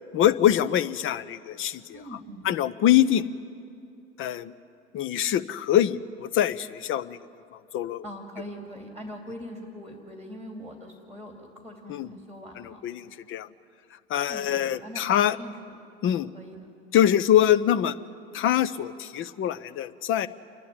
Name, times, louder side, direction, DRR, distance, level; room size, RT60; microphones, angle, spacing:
voice 1, 0.1-2.0 2.4-3.2 4.2-4.5 4.9-7.2 7.5-8.0 11.9-12.1 12.6-13.5 14.1-15.4 16.0-16.3 16.9-18.0 18.3-20.3, left 11 dB, 35° left, 14 dB, 0.8 m, -24 dB
voice 2, 1.9-2.5 8.0-12.8 14.3-15.7 16.3-16.6, equal, 5° left, 3 dB, 2.6 m, -42 dB
28.0 x 11.0 x 9.9 m, 2.6 s
figure-of-eight pair, 80°, 34 cm